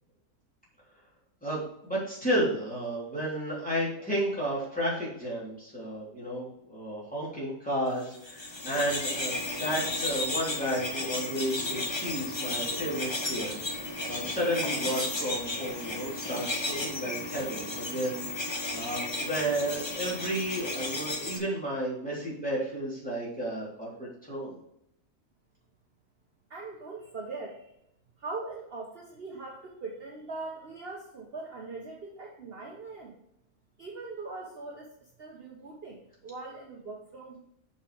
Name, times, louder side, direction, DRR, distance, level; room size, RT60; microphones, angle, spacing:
voice 1, 1.4-24.6, equal, 5° left, -7 dB, 3.5 m, -32 dB
sound 1, 8.1-21.4, left 2 dB, 20° left, 1.0 m, -34 dB
voice 2, 26.5-27.7 28.2-33.1 33.8-34.9 35.2-37.4, right 3 dB, 40° right, -1 dB, 1.2 m, -41 dB
6.6 x 5.9 x 5.0 m, 0.75 s
omnidirectional pair, 1.6 m